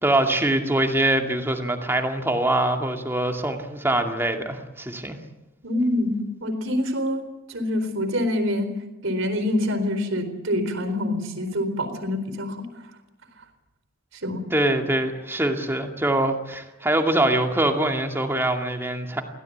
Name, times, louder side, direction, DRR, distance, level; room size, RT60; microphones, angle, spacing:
voice 1, 0.0-5.2 14.5-19.2, right 1 dB, 10° right, 4 dB, 2.3 m, -23 dB
voice 2, 5.6-8.7 9.0-12.6 14.2-14.4, left 1 dB, 60° right, 8 dB, 4.1 m, -26 dB
23.0 x 16.5 x 8.6 m, 0.99 s
head